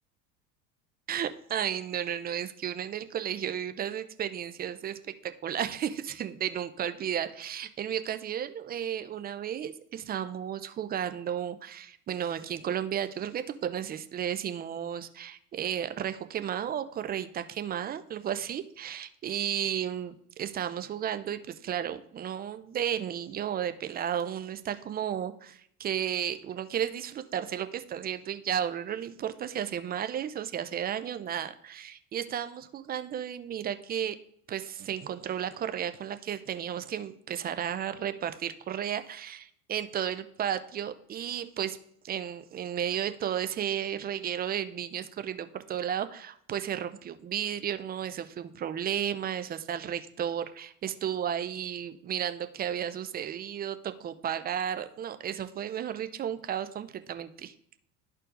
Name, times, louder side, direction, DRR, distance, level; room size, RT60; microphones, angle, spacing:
voice 1, 1.1-5.0 5.2-34.2 34.5-41.8 42.0-57.5, right 9 dB, 20° right, 10 dB, 0.4 m, -33 dB
13.0 x 4.4 x 2.5 m, 0.68 s
hypercardioid pair, 75°, 46 cm